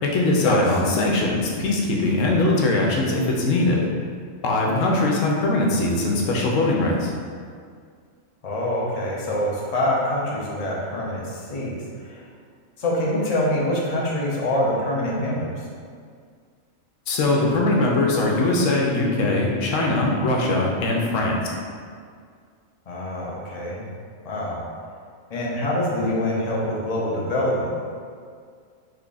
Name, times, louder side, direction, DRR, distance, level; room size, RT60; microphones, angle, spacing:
voice 1, 0.0-3.8 4.4-7.1 17.1-21.4, left 2 dB, 75° left, -1 dB, 1.0 m, -21 dB
voice 2, 4.6-4.9 8.4-11.7 12.0-12.3 12.8-15.7 22.9-23.9 24.2-24.6 25.3-27.7, left 1 dB, 50° left, -4 dB, 0.5 m, -25 dB
3.3 x 2.3 x 3.8 m, 2.1 s
omnidirectional pair, 1.4 m